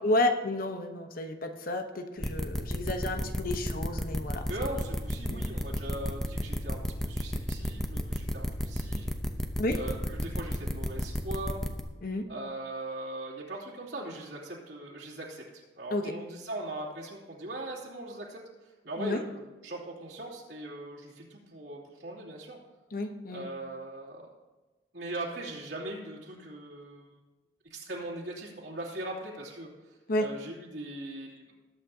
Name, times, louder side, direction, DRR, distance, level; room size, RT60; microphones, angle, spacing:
voice 1, 0.0-4.5 5.3-5.4 9.6-9.8 12.0-12.2 15.9-16.1 19.0-19.2 22.9-23.5 30.1-30.3, left 1 dB, 50° left, 6 dB, 0.9 m, -31 dB
sound 1, 2.2-11.8, equal, ahead, 0.7 m, -31 dB
voice 2, 4.5-9.1 9.7-11.6 12.3-18.4 18.8-22.6 23.3-24.3 24.9-27.2 27.7-31.4, right 1 dB, 70° right, -6 dB, 2.8 m, -40 dB
20.0 x 8.6 x 2.8 m, 1.2 s
head